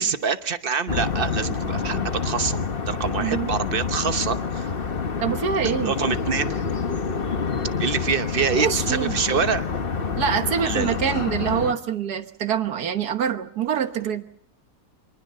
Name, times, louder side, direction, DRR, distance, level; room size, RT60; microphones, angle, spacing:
voice 1, 0.0-2.6 2.9-4.7 5.8-6.6 7.8-9.7 10.6-11.0, right 6 dB, 40° right, 10 dB, 1.1 m, -25 dB
sound 1, 0.9-11.7, left 5 dB, 40° left, 1.2 m, -27 dB
voice 2, 3.2-3.5 5.2-6.0 8.6-9.1 10.2-14.3, right 8 dB, 85° right, 8 dB, 1.7 m, -25 dB
26.5 x 20.0 x 6.6 m, 0.66 s
omnidirectional pair, 1.6 m